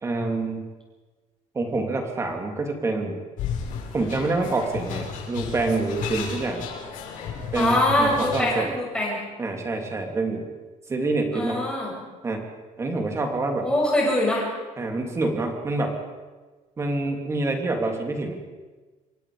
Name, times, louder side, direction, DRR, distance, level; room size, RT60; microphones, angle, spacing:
voice 1, 0.0-0.7 1.5-3.2 3.9-6.7 7.5-8.7 9.4-10.5 10.9-11.7 12.2-12.5 12.8-13.7 14.8-16.0 16.8-18.3, right 2 dB, 20° right, 3 dB, 3.0 m, -26 dB
sound 1, 3.4-8.5, left 7 dB, 75° left, 5.6 m, -33 dB
voice 2, 7.5-9.2 11.3-11.9 13.6-14.5, left 1 dB, 5° left, -4 dB, 7.5 m, -23 dB
27.5 x 23.5 x 5.1 m, 1.3 s
cardioid pair, 180°, 14 cm